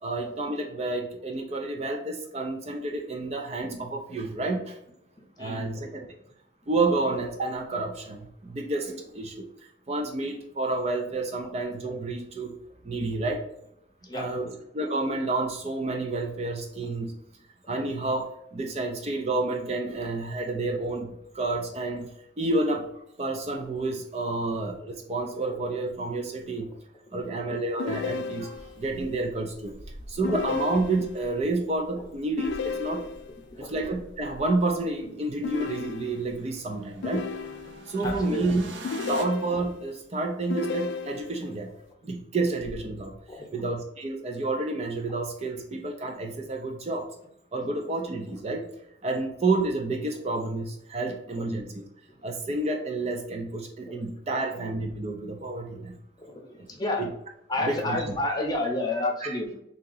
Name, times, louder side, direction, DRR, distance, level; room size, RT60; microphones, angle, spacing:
voice 1, 0.0-4.8 5.4-6.1 6.7-9.5 9.9-12.6 12.8-13.4 14.1-14.4 14.7-17.1 17.7-22.1 22.4-22.9 23.2-26.7 27.1-29.8 30.1-33.1 33.7-37.3 37.9-38.6 39.1-41.7 42.0-43.1 43.5-47.1 47.5-48.7 49.0-51.7 52.2-56.0 57.0-57.1 57.6-58.0 59.2-59.3, right 2 dB, 35° right, 3 dB, 0.4 m, -29 dB
voice 2, 5.2-5.9 14.0-14.5 27.1-27.3 30.2-30.3 32.0-32.1 33.5-33.7 37.9-38.4 43.3-43.5 51.0-51.2 52.1-52.2 53.9-54.0 54.3-54.6 56.2-57.1 57.5-59.6, left 2 dB, 20° left, 1 dB, 0.7 m, -31 dB
sound 1, 27.8-28.8 30.2-31.3 32.4-33.4 35.4-36.4 37.0-38.0 38.8-39.9 40.5-41.5, left 5 dB, 75° left, 0.3 m, -34 dB
sound 2, 28.5-39.3, right 1 dB, 80° right, 0.6 m, -46 dB
3.7 x 2.8 x 3.8 m, 0.79 s
head